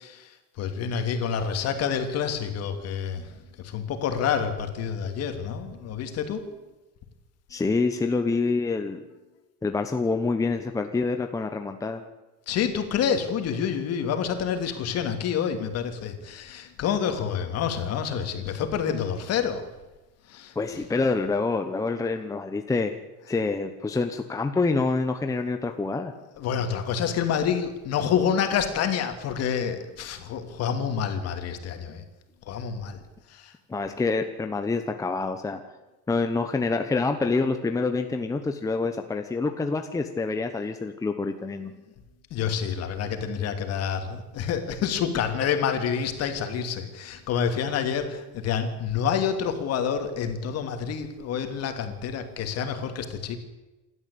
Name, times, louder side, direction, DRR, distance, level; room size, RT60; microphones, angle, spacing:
voice 1, 0.6-3.2 3.6-6.4 12.5-19.6 20.3-20.5 26.4-32.0 32.5-33.0 33.3-33.5 42.3-53.4, left 7 dB, 45° left, 7 dB, 2.8 m, -28 dB
voice 2, 7.5-9.0 9.6-12.0 20.6-22.9 23.3-26.1 33.7-35.6 36.1-41.7, left 3 dB, 10° left, 6 dB, 0.9 m, -26 dB
28.0 x 12.5 x 8.5 m, 1.1 s
cardioid pair, 175°, 34 cm